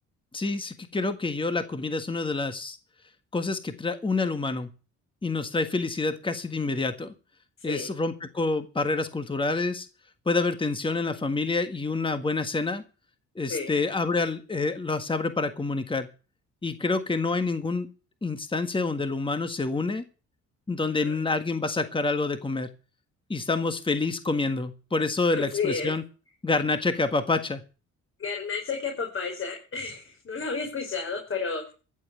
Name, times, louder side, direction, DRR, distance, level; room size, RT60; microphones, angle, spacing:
voice 1, 0.3-2.8 3.3-4.7 5.2-7.1 7.6-9.9 10.2-12.8 13.3-16.1 16.6-17.9 18.2-20.0 20.7-22.7 23.3-26.0 26.4-27.6, left 3 dB, 15° left, 9 dB, 1.6 m, -27 dB
voice 2, 7.6-7.9 13.5-13.7 21.0-21.1 25.3-25.9 28.2-31.7, left 5 dB, 45° left, 1 dB, 5.0 m, -31 dB
15.0 x 7.4 x 8.3 m, 0.35 s
cardioid pair, 90°, 30 cm